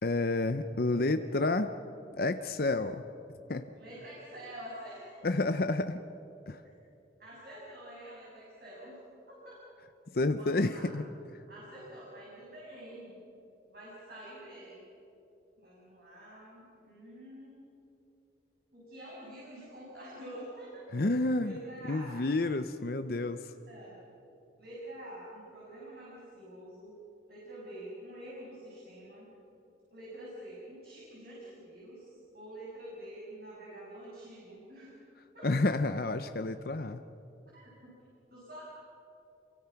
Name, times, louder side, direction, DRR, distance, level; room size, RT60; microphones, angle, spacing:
voice 1, 0.0-1.7 2.2-3.0 3.5-3.6 5.2-6.0 6.5-6.6 10.1-11.0 20.9-21.5 21.9-23.5 35.4-37.0, left 2 dB, 55° left, 9 dB, 0.7 m, -29 dB
voice 2, 3.7-5.2 7.2-9.0 9.3-9.6 10.3-10.9 11.5-13.2 13.7-14.8 15.6-17.6 18.7-21.1 21.4-22.2 23.2-24.0 24.6-27.0 27.3-29.3 29.9-35.0 35.3-35.5 37.4-37.9 38.3-38.6, right 1 dB, 55° right, -6 dB, 6.9 m, -47 dB
29.0 x 23.5 x 5.9 m, 2.9 s
head